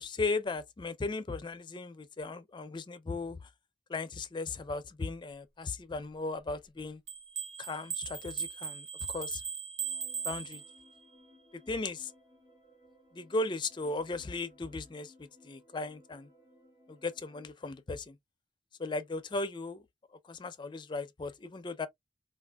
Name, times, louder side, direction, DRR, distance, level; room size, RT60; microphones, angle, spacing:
voice 1, 0.0-3.5 3.9-7.0 7.6-9.4 10.2-10.6 11.5-12.1 13.1-16.3 16.9-18.2 18.8-19.9 20.2-21.9, left 3 dB, 25° left, 0.4 m, -37 dB
sound 1, 7.1-11.0, right 7 dB, 85° right, 0.9 m, -38 dB
sound 2, 9.8-17.5, left 1 dB, 25° right, 1.4 m, -61 dB
3.4 x 2.3 x 2.2 m
head